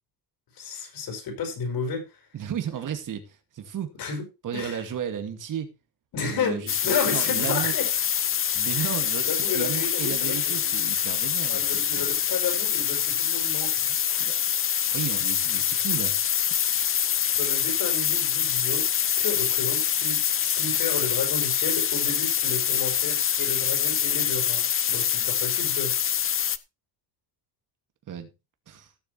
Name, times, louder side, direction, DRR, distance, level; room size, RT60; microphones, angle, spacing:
voice 1, 0.6-2.2 4.0-4.2 4.5-4.8 6.1-7.9 8.7-8.9 9.2-10.7 11.5-13.7 14.1-14.3 17.3-18.9 19.2-26.0, left 5 dB, 60° left, 5.6 m, -32 dB
voice 2, 2.3-3.9 4.4-5.7 6.3-6.8 7.1-7.7 8.5-12.1 13.8-14.4 14.9-16.2 28.1-28.3 28.7-28.9, right 9 dB, 50° right, 2.2 m, -34 dB
sound 1, 6.7-26.6, left 9 dB, 30° left, 0.7 m, -25 dB
17.0 x 7.2 x 3.2 m
cardioid pair, 130°, 40 cm